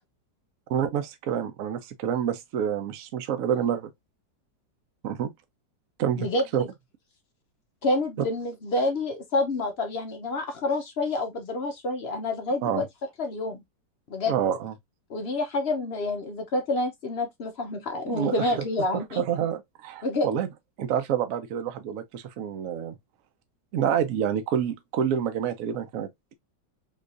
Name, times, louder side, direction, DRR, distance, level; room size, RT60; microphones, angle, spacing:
voice 1, 0.7-3.9 5.0-5.3 6.0-6.3 6.5-6.6 12.6-12.8 14.3-14.7 18.1-18.5 18.9-20.5 20.8-23.0 23.7-26.3, right 9 dB, 60° right, 0.9 m, -28 dB
voice 2, 6.2-6.7 7.8-12.9 13.2-13.6 14.1-14.4 15.1-19.2 20.0-20.3, left 2 dB, 65° left, 0.6 m, -28 dB
3.8 x 3.1 x 2.4 m
omnidirectional pair, 1.9 m